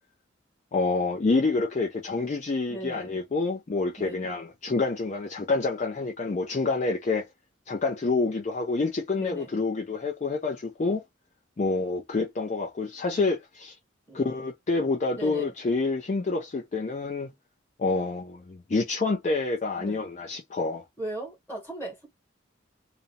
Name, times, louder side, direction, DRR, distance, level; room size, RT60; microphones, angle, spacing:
voice 1, 0.7-7.3 7.7-11.0 11.6-13.8 14.1-17.3 17.8-20.8, left 3 dB, 35° left, 0.4 m, -27 dB
voice 2, 2.7-3.2 4.0-4.3 9.2-9.5 14.1-14.2 15.2-15.5 19.8-20.0 21.0-22.1, right 1 dB, 10° left, 1.0 m, -37 dB
2.4 x 2.0 x 2.7 m
head